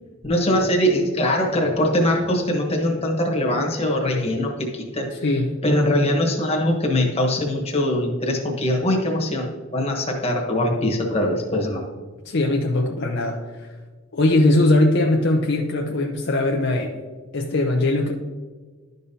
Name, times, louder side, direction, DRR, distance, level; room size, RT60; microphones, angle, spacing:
voice 1, 0.2-5.1 5.6-11.8, left 1 dB, 30° left, 0 dB, 1.3 m, -22 dB
voice 2, 5.2-5.6 12.3-13.7 14.1-16.9 17.3-18.1, left 2 dB, 60° left, 1 dB, 0.6 m, -20 dB
11.5 x 5.3 x 2.8 m, 1.4 s
head